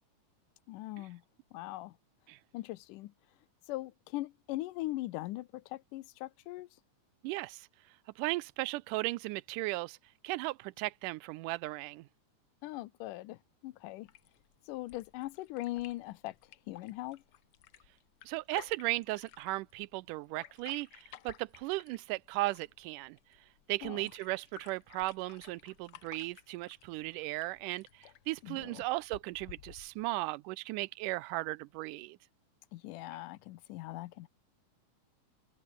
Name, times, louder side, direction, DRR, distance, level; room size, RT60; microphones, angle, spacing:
voice 1, 0.7-1.2 1.5-2.0 2.5-3.1 3.7-6.7 12.6-14.1 14.7-16.4 16.7-17.2 23.8-24.0 28.4-28.8 32.7-34.3, left 17 dB, 85° left, 2.3 m, -40 dB
voice 2, 7.2-7.7 8.2-10.0 10.2-12.1 18.3-23.2 23.7-32.2, right 20 dB, 85° right, 2.1 m, -36 dB
sound 1, 14.0-30.1, left 12 dB, 65° left, 1.4 m, -56 dB
omnidirectional pair, 3.7 m